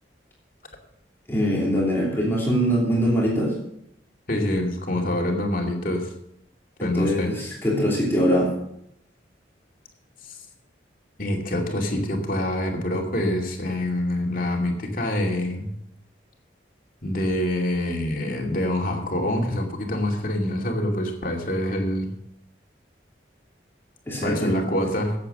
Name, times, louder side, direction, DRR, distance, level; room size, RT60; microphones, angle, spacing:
voice 1, 1.3-3.5 6.8-8.5 24.1-24.5, equal, 10° left, -4 dB, 3.0 m, -22 dB
voice 2, 4.3-6.1 6.8-7.3 10.2-10.3 11.2-15.7 17.0-22.1 24.2-25.1, left 1 dB, 50° left, 2 dB, 2.6 m, -26 dB
13.5 x 8.4 x 6.7 m, 0.76 s
head